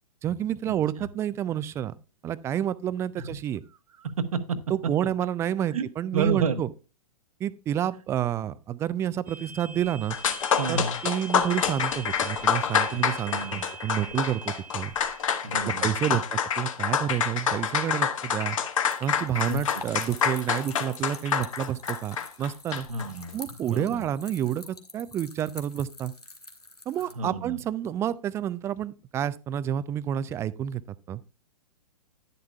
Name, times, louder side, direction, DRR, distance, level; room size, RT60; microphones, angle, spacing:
voice 1, 0.2-1.9 2.2-3.6 4.7-6.7 7.4-10.2 10.7-14.9 15.6-18.6 19.0-22.9 23.3-26.1 26.9-30.8 31.1-31.2, right 10 dB, 15° right, 0.4 m, -29 dB
voice 2, 6.1-6.6 10.6-11.0 13.3-13.6 15.4-16.0 19.5-19.6 22.9-23.4 23.7-24.0 27.1-27.6, right 4 dB, 65° right, 1.2 m, -30 dB
sound 1, 9.3-15.6, right 3 dB, 90° right, 2.7 m, -43 dB
sound 2, 9.8-9.9 10.1-23.1, left 7 dB, 55° left, 1.4 m, -27 dB
sound 3, 17.1-27.1, left 2 dB, 90° left, 1.7 m, -46 dB
10.5 x 10.5 x 2.3 m
figure-of-eight pair, 110°, 19 cm